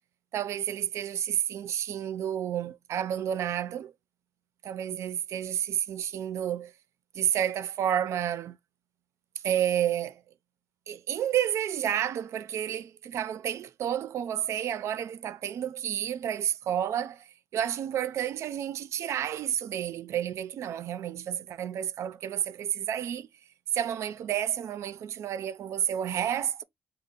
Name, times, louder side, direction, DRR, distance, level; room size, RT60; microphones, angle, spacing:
voice 1, 0.3-3.9 4.6-6.7 7.1-8.6 9.4-10.2 10.9-17.3 17.5-23.3 23.7-26.6, right 10 dB, 70° right, 0.4 m, -30 dB
4.2 x 2.0 x 3.6 m
cardioid pair, 105°, 5 cm